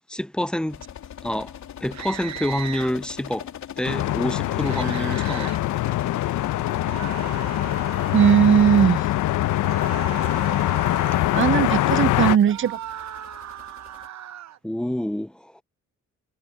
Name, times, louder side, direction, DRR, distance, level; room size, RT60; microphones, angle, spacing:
voice 1, 0.1-0.8 1.2-1.5 1.8-3.5 3.8-5.5 14.6-15.6, left 1 dB, 5° left, 0.6 m, -27 dB
sound 1, 0.7-14.1, left 10 dB, 70° left, 3.5 m, -41 dB
sound 2, 1.9-2.9 4.6-5.6 6.8-8.4 9.6-11.3 12.4-14.6, right 12 dB, 65° right, 1.1 m, -37 dB
sound 3, 3.9-12.4, left 15 dB, 85° left, 1.0 m, -23 dB
voice 2, 8.1-9.0 11.3-12.8, right 9 dB, 40° right, 0.6 m, -18 dB
cardioid pair, 90°, 30 cm